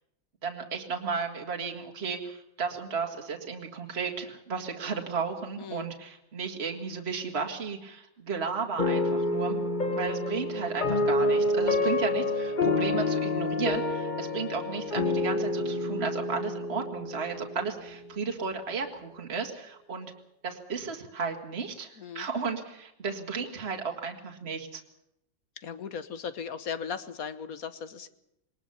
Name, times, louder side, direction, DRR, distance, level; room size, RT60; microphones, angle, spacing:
voice 1, 0.4-9.6 9.9-20.1 20.4-24.8, right 5 dB, 35° right, 2 dB, 2.3 m, -34 dB
sound 1, 8.8-17.9, left 2 dB, 30° left, 1.2 m, -28 dB
voice 2, 22.0-22.3 25.6-28.1, left 6 dB, 55° left, 13 dB, 1.6 m, -37 dB
22.0 x 20.0 x 7.0 m, 0.80 s
omnidirectional pair, 2.0 m